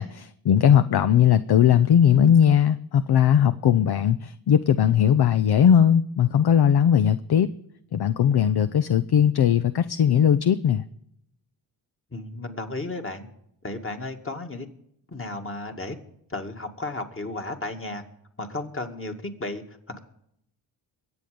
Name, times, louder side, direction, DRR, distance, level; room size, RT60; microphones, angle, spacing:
voice 1, 0.0-7.5 7.9-10.8, left 9 dB, 50° left, 13 dB, 0.7 m, -19 dB
voice 2, 12.1-13.3 13.6-14.7 15.1-16.0 16.3-18.0 18.4-20.0, left 2 dB, 25° left, 4 dB, 2.2 m, -34 dB
23.0 x 7.9 x 5.2 m, 0.74 s
supercardioid pair, 50°, 48 cm